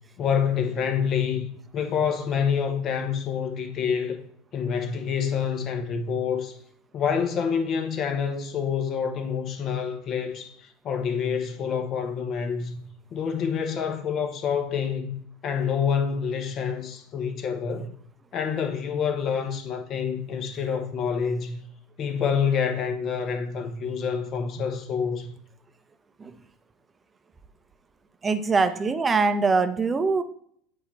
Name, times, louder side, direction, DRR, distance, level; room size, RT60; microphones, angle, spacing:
voice 1, 0.2-1.5 1.7-4.2 4.5-6.6 6.9-12.8 13.1-15.2 15.4-17.9 18.3-21.6 22.0-25.3, left 7 dB, 45° left, 1.2 m, -27 dB
voice 2, 28.2-30.2, right 4 dB, 25° right, 0.7 m, -23 dB
8.3 x 2.8 x 4.5 m
hypercardioid pair, 90°, 0 cm